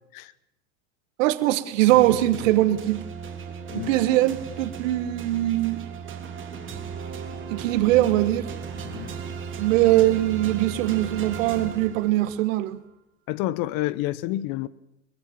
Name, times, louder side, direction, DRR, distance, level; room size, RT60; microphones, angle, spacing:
voice 1, 1.2-3.0 3.7-5.8 7.5-8.5 9.6-12.8, right 15 dB, 70° right, 1.5 m, -21 dB
sound 1, 1.9-12.5, right 6 dB, 30° right, 2.8 m, -36 dB
voice 2, 13.3-14.7, left 15 dB, 55° left, 1.1 m, -29 dB
22.0 x 20.5 x 7.2 m
hypercardioid pair, 95°, 40 cm